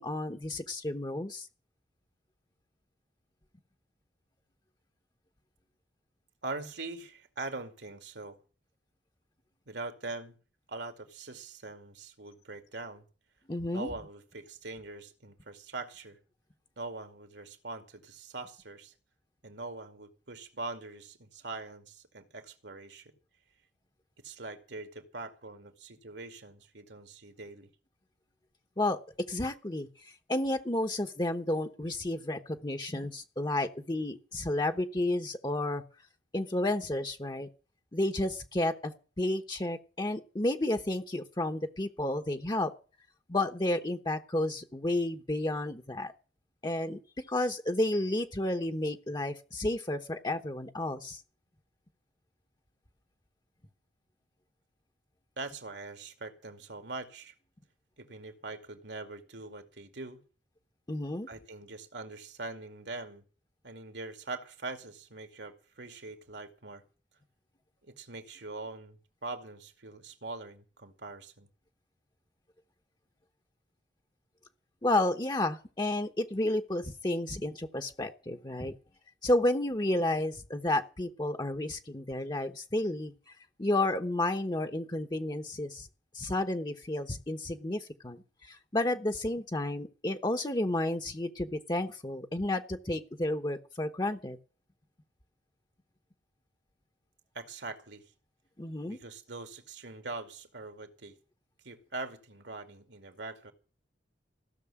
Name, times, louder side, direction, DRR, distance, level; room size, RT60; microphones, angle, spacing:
voice 1, 0.0-1.5 13.5-13.9 28.8-29.0 29.3-35.8 36.3-37.5 37.9-42.7 43.3-46.1 46.6-47.0 47.3-51.2 60.9-61.3 74.8-78.7 79.2-83.1 83.6-85.9 86.1-94.4 98.6-99.0, left 1 dB, 25° left, 5 dB, 1.0 m, -31 dB
voice 2, 6.4-8.4 9.7-10.4 10.7-13.0 13.7-16.2 16.8-18.9 19.4-23.1 24.2-27.7 55.4-57.3 58.0-60.2 61.3-63.2 63.6-66.8 67.8-71.5 97.3-98.1 98.9-101.1 101.6-103.5, right 3 dB, 75° right, 7 dB, 2.4 m, -42 dB
16.0 x 6.8 x 10.0 m, 0.35 s
head